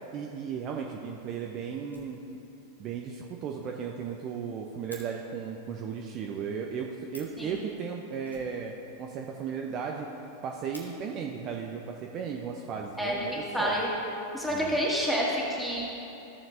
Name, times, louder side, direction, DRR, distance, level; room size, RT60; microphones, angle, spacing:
voice 1, 0.1-2.2 2.8-8.7 9.0-10.1 10.4-13.8 14.5-14.8, right 6 dB, 35° right, 1 dB, 0.5 m, -35 dB
Fire, 1.8-2.7 3.0-3.1 3.4-3.5 3.7-3.8 4.1-5.1 6.8-6.9 7.1-7.5 8.2-9.2 9.5-9.6 9.8-9.9 10.3-10.9 11.9-12.0 12.6-13.2, equal, 85° left, 1.2 m, -51 dB
voice 2, 13.0-13.9 14.3-15.8, equal, ahead, -6 dB, 1.9 m, -28 dB
14.5 x 7.1 x 2.6 m, 2.9 s
figure-of-eight pair, 90°, 0 cm